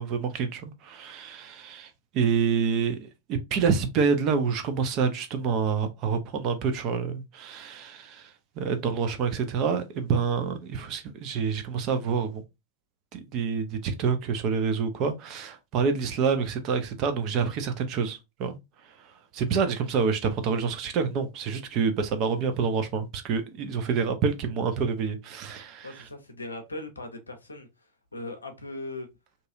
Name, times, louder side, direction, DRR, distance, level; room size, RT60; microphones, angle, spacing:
voice 1, 0.0-12.4 13.1-18.6 19.0-25.9, right 6 dB, 40° right, 0.5 m, -27 dB
voice 2, 25.8-29.1, left 2 dB, 80° left, 0.6 m, -39 dB
2.7 x 2.3 x 2.6 m
figure-of-eight pair, 90°, 0 cm